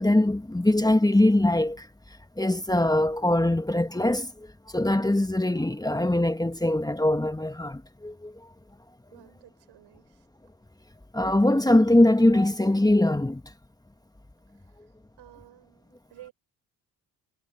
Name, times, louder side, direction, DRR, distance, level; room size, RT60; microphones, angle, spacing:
voice 1, 0.0-1.9 2.4-8.4 11.1-13.5, left 1 dB, 10° left, 1.6 m, -22 dB
voice 2, 9.1-10.3 14.5-14.8 15.2-16.3, right 14 dB, 80° right, 6.8 m, -52 dB
supercardioid pair, 60°, 41 cm